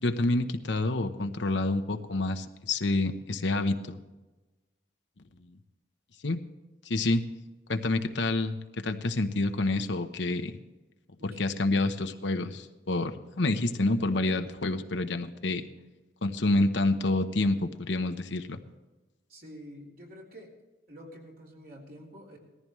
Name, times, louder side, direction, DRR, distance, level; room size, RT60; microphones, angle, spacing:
voice 1, 0.0-4.0 6.2-6.4 6.8-7.2 7.7-10.5 11.2-15.6 16.2-18.6, left 2 dB, 75° left, 7 dB, 1.0 m, -28 dB
voice 2, 19.3-20.5 20.9-22.4, equal, 50° right, -2 dB, 3.5 m, -48 dB
19.0 x 14.5 x 3.2 m, 1.1 s
head